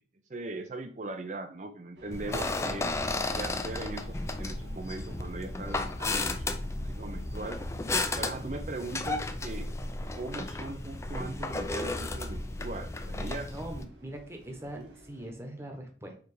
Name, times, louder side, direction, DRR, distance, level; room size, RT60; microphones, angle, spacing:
voice 1, 0.3-2.9 3.3-7.6 8.2-9.7 10.1-13.6 14.7-14.9, right 2 dB, 40° right, 7 dB, 0.6 m, -39 dB
sound 1, 2.0-15.3, right 1 dB, 85° right, 1.6 m, -53 dB
sound 2, 2.1-13.8, left 2 dB, 15° left, 0.4 m, -34 dB
voice 2, 13.5-16.1, right 1 dB, 15° right, 3 dB, 1.1 m, -42 dB
4.9 x 4.5 x 4.9 m, 0.43 s
head